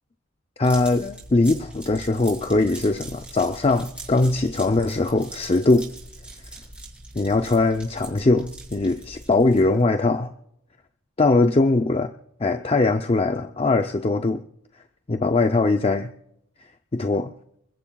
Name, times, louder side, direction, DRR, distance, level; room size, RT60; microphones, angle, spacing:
voice 1, 0.6-5.9 7.1-10.3 11.2-12.1 12.4-14.4 15.1-16.1 16.9-17.3, left 2 dB, 25° left, 7 dB, 0.5 m, -21 dB
sound 1, 0.6-9.8, right 2 dB, 5° right, 7.0 m, -41 dB
29.0 x 14.5 x 2.3 m, 0.75 s
head